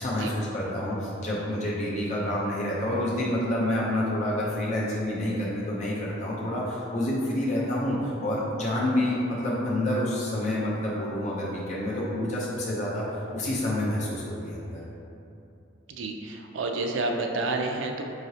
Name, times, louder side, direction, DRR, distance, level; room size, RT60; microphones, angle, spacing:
voice 1, 0.0-13.0 13.3-14.8, left 1 dB, 40° left, -6 dB, 0.5 m, -28 dB
voice 2, 15.9-18.0, right 2 dB, 80° right, 3 dB, 0.4 m, -29 dB
4.7 x 3.1 x 2.7 m, 2.7 s
head